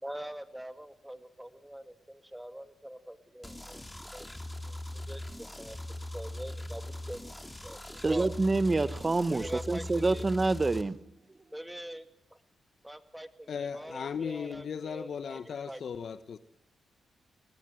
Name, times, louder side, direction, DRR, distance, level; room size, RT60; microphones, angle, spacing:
voice 1, 0.0-3.8 4.1-4.3 4.7-5.8 6.1-7.2 7.6-8.3 9.3-10.2 11.5-12.1 12.8-15.4 15.7-15.8, right 1 dB, 5° right, 9 dB, 2.2 m, -44 dB
sound 1, 3.4-10.8, left 1 dB, 10° left, 3.0 m, -41 dB
voice 2, 8.0-11.0, right 3 dB, 30° right, 16 dB, 1.0 m, -27 dB
voice 3, 13.5-16.4, left 7 dB, 65° left, 12 dB, 1.0 m, -37 dB
23.0 x 19.5 x 7.8 m, 0.74 s
supercardioid pair, 55°, 0 cm